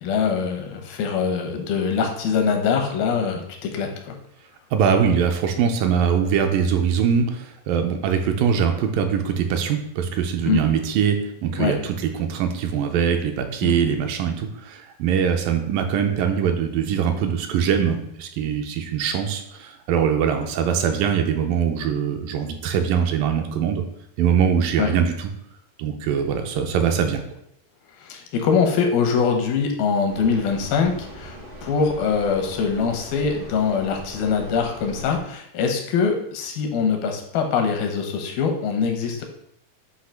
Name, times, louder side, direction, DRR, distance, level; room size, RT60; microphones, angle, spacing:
voice 1, 0.0-4.1 10.5-10.6 11.6-11.8 13.6-13.7 24.8-24.9 28.0-39.2, left 6 dB, 80° left, 3 dB, 2.9 m, -23 dB
voice 2, 4.7-23.8 24.2-25.3 25.8-27.2, right 7 dB, 80° right, 5 dB, 2.2 m, -22 dB
sound 1, 30.1-35.2, equal, 55° right, 0.6 m, -40 dB
8.2 x 2.8 x 5.7 m, 0.75 s
omnidirectional pair, 4.2 m